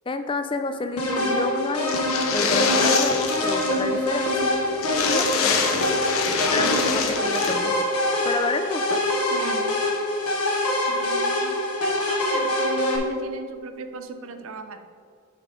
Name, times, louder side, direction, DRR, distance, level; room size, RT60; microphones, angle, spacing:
voice 1, 0.1-4.6 5.0-5.6 6.5-7.8 8.2-9.0, left 3 dB, 25° left, 9 dB, 0.3 m, -29 dB
sound 1, 1.0-13.0, left 1 dB, 90° left, 1.2 m, -24 dB
sound 2, 1.9-3.8 4.1-4.2 4.4-4.5 4.8-7.5, left 5 dB, 70° left, 0.8 m, -25 dB
voice 2, 9.3-9.8 10.9-11.5 11.8-14.9, right 2 dB, 65° right, 9 dB, 0.5 m, -36 dB
8.4 x 3.7 x 4.9 m, 2.2 s
head